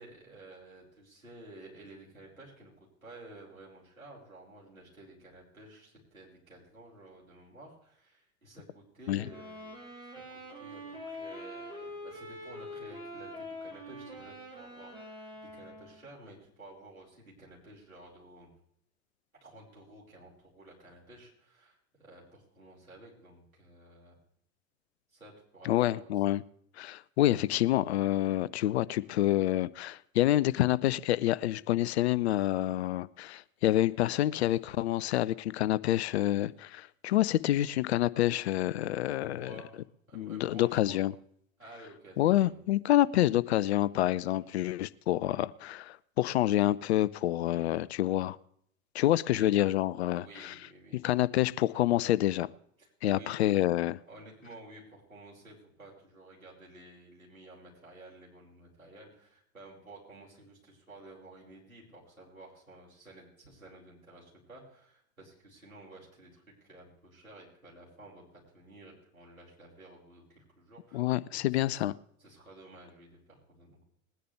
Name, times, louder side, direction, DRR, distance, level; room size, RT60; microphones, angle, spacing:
voice 1, 0.0-2.7 3.0-9.8 10.1-18.5 19.4-24.2 25.1-26.3 39.1-41.0 41.6-42.6 44.3-44.5 47.5-47.8 49.3-49.6 50.2-51.0 51.8-52.0 52.8-53.6 54.1-71.9 72.2-73.8, right 2 dB, 80° right, 5.4 m, -53 dB
sound 1, 9.2-16.1, left 1 dB, 10° right, 4.3 m, -44 dB
voice 2, 25.6-26.4 26.8-39.5 40.2-41.1 42.2-48.4 48.9-50.5 51.0-52.5 53.0-54.0 70.9-71.9, left 14 dB, 50° left, 0.5 m, -27 dB
20.5 x 10.0 x 3.4 m
figure-of-eight pair, 90°, 41 cm